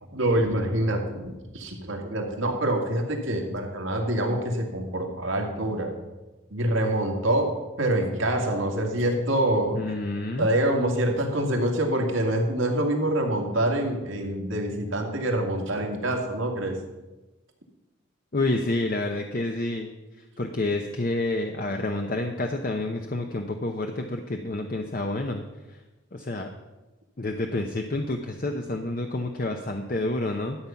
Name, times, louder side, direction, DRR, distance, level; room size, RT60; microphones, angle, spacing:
voice 1, 0.1-5.9 6.5-9.9 10.4-16.8, right 1 dB, 90° right, 1 dB, 2.2 m, -26 dB
voice 2, 9.7-10.5 18.3-19.9 20.2-25.4 25.7-25.8 26.1-26.5 27.2-30.6, left 2 dB, 45° left, 4 dB, 0.7 m, -29 dB
13.0 x 8.5 x 5.8 m, 1.1 s
head